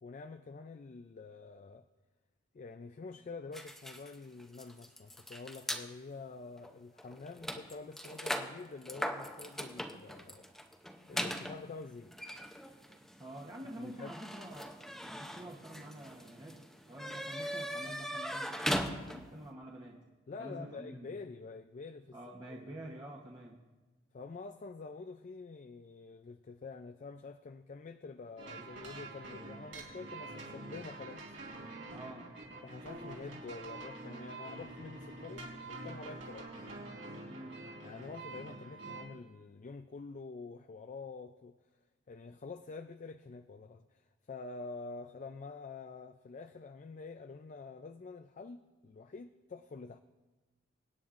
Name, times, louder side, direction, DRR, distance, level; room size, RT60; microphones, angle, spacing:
voice 1, 0.0-1.9 2.5-10.5 11.1-12.1 13.8-14.1 20.3-22.2 22.5-22.6 24.1-31.2 32.6-36.5 37.8-41.6 42.1-50.0, left 4 dB, 40° left, 9 dB, 0.4 m, -47 dB
sound 1, 3.5-5.9 6.6-6.7 7.0-19.4, equal, ahead, 0.6 m, -40 dB
voice 2, 13.2-14.8 15.0-20.0 20.4-21.1 22.1-23.6 31.9-32.3 37.3-37.6, right 1 dB, 25° right, -3 dB, 1.0 m, -48 dB
sound 2, 28.4-39.0, right 2 dB, 80° right, 3.8 m, -46 dB
24.0 x 9.6 x 2.5 m, 1.2 s
head